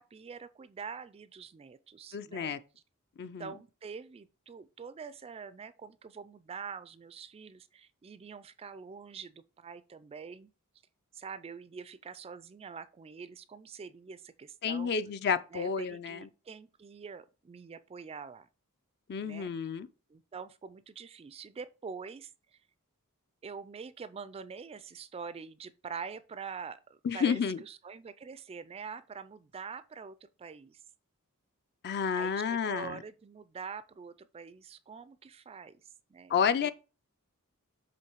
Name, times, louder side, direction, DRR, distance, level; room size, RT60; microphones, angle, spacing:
voice 1, 0.0-2.6 3.2-10.5 11.1-14.9 15.5-18.5 19.2-19.5 20.1-22.6 23.4-30.8 32.1-36.7, right 5 dB, 25° right, 0.3 m, -45 dB
voice 2, 2.1-2.6 3.2-3.5 14.6-16.3 19.1-19.9 27.0-27.6 31.8-33.0 36.3-36.7, left 6 dB, 45° left, 0.4 m, -30 dB
7.7 x 3.1 x 4.5 m
head